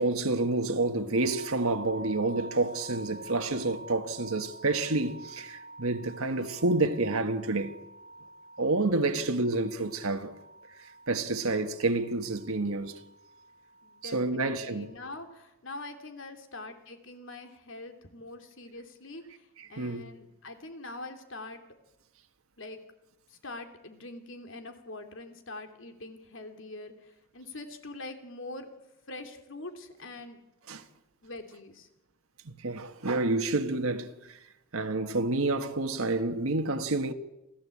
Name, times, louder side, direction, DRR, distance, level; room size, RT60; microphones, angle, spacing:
voice 1, 0.0-7.8 8.6-10.4 11.1-12.9 14.0-14.9 19.8-20.0 30.7-30.8 32.6-34.4 34.7-37.1, right 2 dB, 85° right, 1.5 m, -29 dB
sound 1, 1.1-15.1, right 1 dB, 35° left, 3.4 m, -48 dB
voice 2, 9.1-9.5 13.8-21.6 22.6-22.8 23.3-28.7 29.1-30.4 31.2-31.9, left 2 dB, 65° left, 3.1 m, -44 dB
27.5 x 16.0 x 8.5 m
head